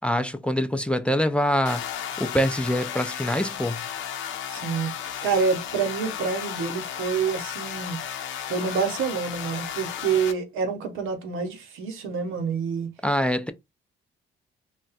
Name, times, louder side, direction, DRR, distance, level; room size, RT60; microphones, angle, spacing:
voice 1, 0.0-1.9 2.2-3.9 13.0-13.5, equal, 5° left, 0.4 m, -24 dB
sound 1, 1.7-10.3, left 9 dB, 75° left, 0.7 m, -34 dB
voice 2, 4.5-4.9 5.2-8.0 8.4-12.9, right 6 dB, 90° right, 0.9 m, -27 dB
2.3 x 2.2 x 3.9 m
cardioid pair, 90°, 20 cm